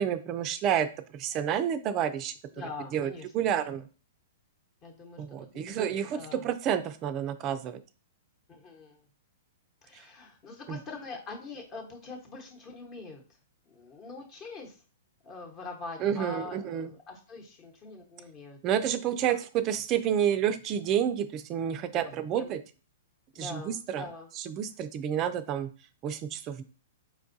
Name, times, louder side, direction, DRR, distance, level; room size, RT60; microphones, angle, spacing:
voice 1, 0.0-2.3 2.9-3.9 5.2-7.8 9.9-10.0 10.7-10.8 16.0-16.9 18.6-22.6 23.4-24.1 24.4-25.7 26.0-26.6, right 9 dB, 35° right, 10 dB, 0.3 m, -29 dB
voice 2, 2.6-3.6 4.8-6.5 8.5-9.0 9.8-13.2 13.6-14.8 15.2-18.6 21.9-22.5 23.3-24.3, left 3 dB, 30° left, 1 dB, 1.0 m, -44 dB
4.4 x 2.3 x 2.6 m, 0.36 s
hypercardioid pair, 130°, 0 cm